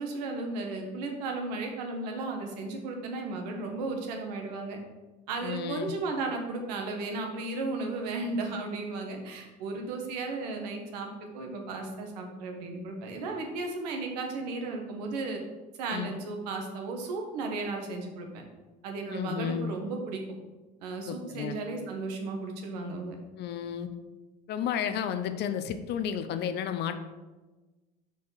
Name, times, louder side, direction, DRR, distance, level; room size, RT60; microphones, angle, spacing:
voice 1, 0.0-4.8 5.3-15.4 15.8-18.4 18.8-20.2 20.8-23.2, right 3 dB, 90° right, 3 dB, 1.3 m, -35 dB
voice 2, 5.4-5.9 15.9-16.1 19.1-19.7 21.1-21.6 23.4-23.9 24.5-27.0, left 8 dB, 55° left, 9 dB, 0.6 m, -32 dB
4.8 x 4.2 x 5.7 m, 1.2 s
supercardioid pair, 90°, 20 cm